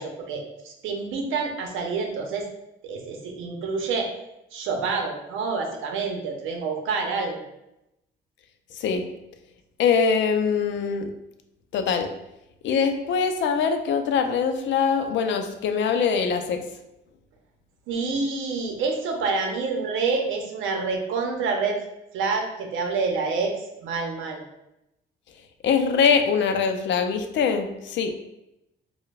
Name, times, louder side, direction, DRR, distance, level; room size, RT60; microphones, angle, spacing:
voice 1, 0.0-2.5 2.8-4.1 4.5-7.4 17.9-21.8 22.1-24.4, right 4 dB, 80° right, 2 dB, 0.7 m, -27 dB
voice 2, 8.7-9.0 9.8-11.1 11.7-12.1 12.6-16.6 25.6-28.1, left 6 dB, 70° left, 7 dB, 0.4 m, -23 dB
4.5 x 2.1 x 2.3 m, 0.87 s
cardioid pair, 90°, 20 cm